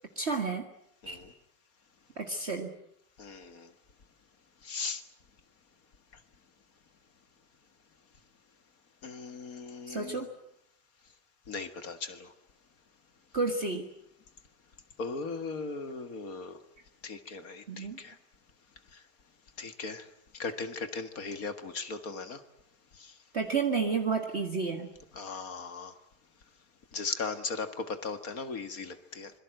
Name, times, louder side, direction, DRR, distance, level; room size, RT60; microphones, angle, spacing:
voice 1, 0.2-0.7 1.1-1.2 2.2-2.7 9.9-10.3 13.3-13.9 17.7-18.0 23.3-24.9, right 4 dB, 40° right, 4 dB, 2.1 m, -31 dB
voice 2, 3.2-3.7 4.6-5.0 9.0-10.3 11.5-12.3 15.0-16.6 17.0-18.2 19.6-20.0 20.4-22.4 23.0-23.1 25.1-25.9 26.9-29.3, left 4 dB, 60° left, 9 dB, 2.2 m, -38 dB
25.5 x 23.0 x 7.8 m, 0.73 s
omnidirectional pair, 1.7 m